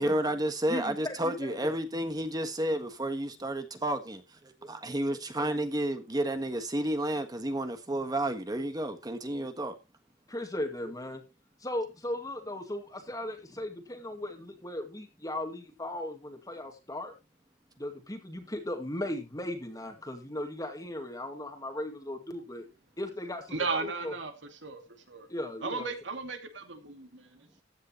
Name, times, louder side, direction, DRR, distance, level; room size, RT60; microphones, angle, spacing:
voice 1, 0.0-4.2 4.7-9.8, right 1 dB, 20° right, 1.4 m, -31 dB
voice 2, 0.7-1.7 10.3-11.2 11.6-17.1 17.8-22.7 23.0-24.1 25.3-25.9, left 1 dB, 20° left, 2.0 m, -37 dB
voice 3, 23.5-24.8 25.1-25.3 25.6-27.6, right 4 dB, 75° right, 2.4 m, -36 dB
15.0 x 9.5 x 3.0 m
head